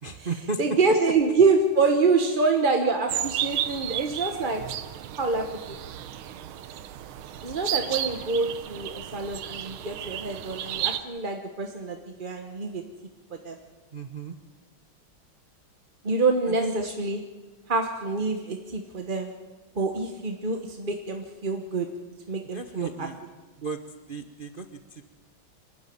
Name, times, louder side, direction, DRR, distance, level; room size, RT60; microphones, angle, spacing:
voice 1, 0.0-1.1 2.2-2.3 2.8-3.2 13.9-14.4 16.5-16.7 22.5-23.2 23.5-23.8 24.1-25.0, right 4 dB, 50° right, 7 dB, 0.6 m, -34 dB
voice 2, 0.6-4.6 5.2-5.8 7.4-12.8 13.3-13.6 16.0-17.2 17.7-19.3 19.7-21.9 22.3-22.9, right 4 dB, 30° right, 3 dB, 1.0 m, -26 dB
sound 1, 3.1-11.0, right 11 dB, 75° right, 1.7 m, -33 dB
25.5 x 13.0 x 9.4 m, 1.2 s
omnidirectional pair, 2.3 m